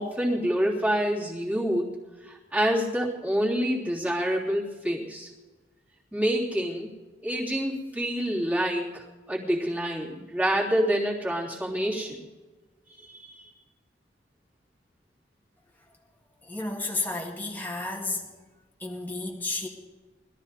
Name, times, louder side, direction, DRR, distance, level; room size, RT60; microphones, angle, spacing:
voice 1, 0.0-2.0 2.3-5.3 6.1-6.9 7.2-12.2 13.0-13.4, equal, 10° right, -4 dB, 3.3 m, -27 dB
voice 2, 16.4-18.3 18.8-19.7, left 2 dB, 10° left, -1 dB, 2.0 m, -32 dB
21.0 x 13.5 x 4.2 m, 1.2 s
head